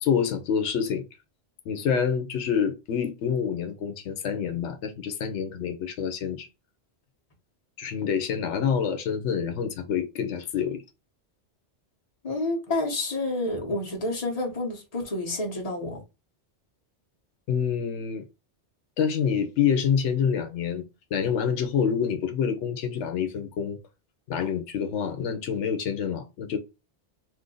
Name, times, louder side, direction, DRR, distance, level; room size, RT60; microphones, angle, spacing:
voice 1, 0.0-1.0 1.7-6.5 7.8-10.8 17.5-18.2 19.0-20.8 21.1-23.8 24.3-26.6, left 7 dB, 90° left, 1.0 m, -27 dB
voice 2, 12.2-16.0, left 2 dB, 35° left, 1.1 m, -29 dB
2.7 x 2.5 x 3.7 m
omnidirectional pair, 1.1 m